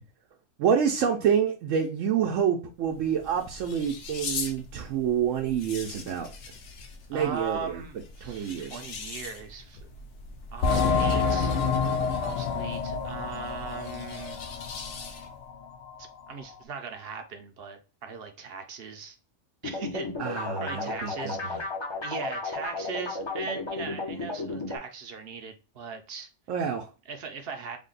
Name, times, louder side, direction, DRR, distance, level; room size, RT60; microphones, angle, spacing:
voice 1, 0.6-6.3 7.1-7.8 8.2-8.8 20.2-21.6 26.5-26.9, right 8 dB, 85° right, 1.0 m, -27 dB
sound 1, 2.8-15.5, left 4 dB, 70° left, 1.0 m, -42 dB
voice 2, 7.1-9.9 10.5-11.5 12.2-14.4 16.3-19.2 19.6-21.6 22.0-26.3 27.1-27.8, right 5 dB, 60° right, 0.8 m, -39 dB
sound 2, 10.6-14.9 15.2-15.3 15.9-16.0, left 5 dB, 90° left, 1.0 m, -27 dB
sound 3, 19.6-24.8, left 3 dB, 30° left, 0.5 m, -34 dB
3.5 x 2.2 x 3.8 m
omnidirectional pair, 1.3 m